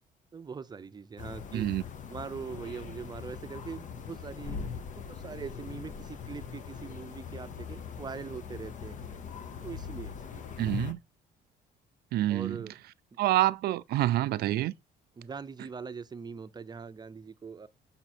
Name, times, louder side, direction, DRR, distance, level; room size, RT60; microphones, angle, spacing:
voice 1, 0.3-1.7 2.1-4.6 5.0-9.0 9.6-10.7 12.3-12.8 15.2-17.7, right 5 dB, 25° right, 0.7 m, -42 dB
sound 1, 1.2-10.9, left 6 dB, 50° left, 1.0 m, -41 dB
voice 2, 1.5-1.8 10.6-11.0 12.1-12.6 13.2-14.7, right 15 dB, 70° right, 0.5 m, -27 dB
6.0 x 5.7 x 4.3 m
cardioid pair, 110°, 17 cm